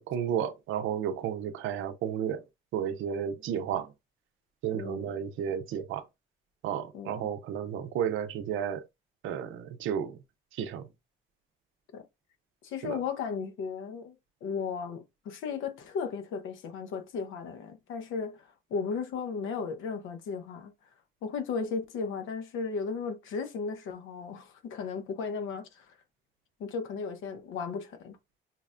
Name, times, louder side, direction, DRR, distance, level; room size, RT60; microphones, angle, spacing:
voice 1, 0.0-2.4 2.7-3.9 4.6-6.0 6.6-8.8 9.2-10.2 10.6-10.8 12.8-13.0, right 9 dB, 85° right, 0.6 m, -32 dB
voice 2, 4.7-5.1 6.9-7.2 11.9-12.0 12.6-14.1 14.4-20.7 21.2-25.8 26.6-28.2, left 5 dB, 85° left, 0.8 m, -35 dB
5.7 x 2.1 x 2.4 m
cardioid pair, 90°, 20 cm